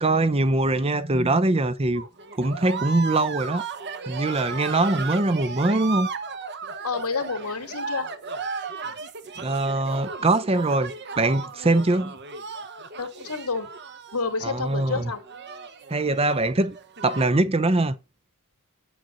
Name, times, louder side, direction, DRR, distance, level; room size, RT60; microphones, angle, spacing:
voice 1, 0.0-2.1 2.3-3.6 4.1-6.1 9.4-12.1 14.4-15.1 15.9-16.8 17.0-17.9, right 2 dB, 25° right, 0.6 m, -22 dB
sound 1, 2.0-17.4, right 5 dB, 50° right, 1.0 m, -35 dB
voice 2, 6.8-8.1 13.0-13.7 14.1-15.2, left 4 dB, 85° left, 2.5 m, -29 dB
8.9 x 7.9 x 3.9 m
head